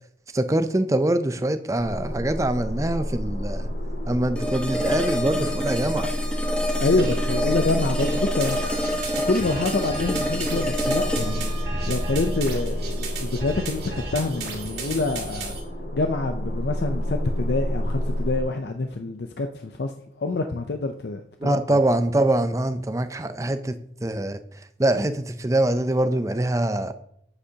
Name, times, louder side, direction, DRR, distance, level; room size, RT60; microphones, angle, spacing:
voice 1, 0.3-3.7 4.1-6.1 21.4-24.4 24.8-26.9, right 1 dB, 20° right, 10 dB, 0.5 m, -24 dB
sound 1, 1.8-18.4, equal, 55° left, 2.4 m, -30 dB
sound 2, 4.4-13.4, equal, 5° left, 1.1 m, -28 dB
voice 2, 6.8-8.6 9.1-15.6 15.9-19.9 20.2-21.8, left 3 dB, 70° left, 6 dB, 0.6 m, -26 dB
sound 3, 7.0-7.4 8.0-15.6, right 3 dB, 70° right, 2.3 m, -35 dB
9.9 x 8.1 x 2.8 m, 0.70 s
head